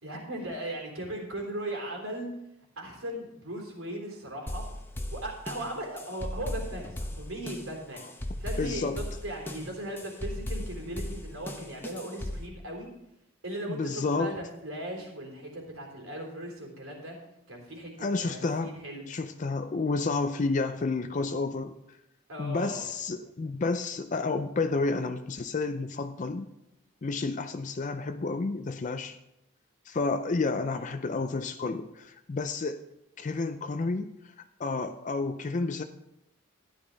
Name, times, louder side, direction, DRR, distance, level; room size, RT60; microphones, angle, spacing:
voice 1, 0.0-2.3 2.8-4.6 5.1-12.9 13.4-17.2 17.5-17.9 18.2-19.0 22.3-22.8 30.7-30.9, right 1 dB, 75° right, 0 dB, 3.7 m, -38 dB
sound 1, 4.5-12.5, left 1 dB, 10° left, 0.8 m, -37 dB
voice 2, 8.6-9.0 13.7-14.4 18.0-18.7 19.1-22.0 22.4-26.5 27.0-29.2 29.9-32.8 33.2-34.3 34.6-35.8, left 3 dB, 35° left, 8 dB, 0.4 m, -30 dB
13.0 x 10.0 x 3.9 m, 0.83 s
head